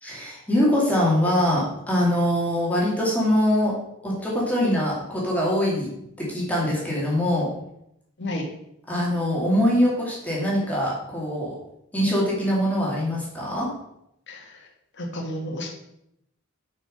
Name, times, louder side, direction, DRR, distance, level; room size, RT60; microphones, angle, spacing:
voice 1, 0.0-3.7 4.0-5.9 6.2-7.5 8.9-11.6 11.9-13.7, left 1 dB, 10° left, -5 dB, 2.5 m, -23 dB
voice 2, 15.0-15.8, left 1 dB, 60° left, 1 dB, 1.7 m, -31 dB
6.6 x 5.9 x 5.4 m, 0.80 s
head